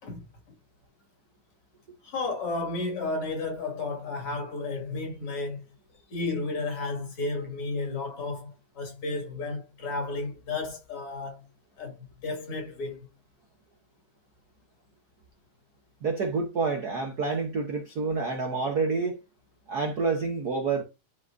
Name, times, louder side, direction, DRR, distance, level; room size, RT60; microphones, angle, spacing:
voice 1, 2.0-5.6 6.1-8.5 8.7-11.4 11.8-12.0 12.2-13.0, left 3 dB, 50° left, 3.2 m, -32 dB
voice 2, 16.0-19.2 19.7-20.8, right 4 dB, 90° right, 0.8 m, -28 dB
11.5 x 5.1 x 2.7 m
omnidirectional pair, 3.6 m